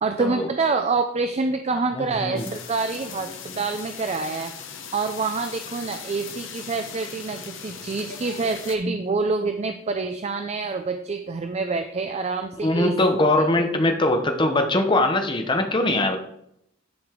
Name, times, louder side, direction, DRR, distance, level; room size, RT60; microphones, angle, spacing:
voice 1, 0.0-4.5 4.9-13.0 13.3-13.5, right 4 dB, 30° right, 7 dB, 0.4 m, -26 dB
voice 2, 2.0-2.5 12.6-16.2, left 2 dB, 25° left, 5 dB, 0.9 m, -21 dB
sound 1, 2.4-8.8, left 6 dB, 65° left, 1.1 m, -39 dB
10.5 x 5.1 x 3.7 m, 0.74 s
head